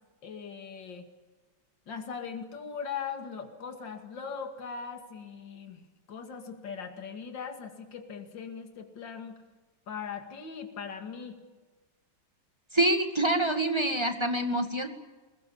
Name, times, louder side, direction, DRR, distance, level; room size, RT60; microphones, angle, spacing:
voice 1, 0.2-1.1 1.9-9.4 9.9-11.4, left 6 dB, 65° left, 5 dB, 3.0 m, -40 dB
voice 2, 12.7-14.9, right 1 dB, 15° right, 6 dB, 1.9 m, -26 dB
23.5 x 21.0 x 8.6 m, 1.3 s
omnidirectional pair, 2.2 m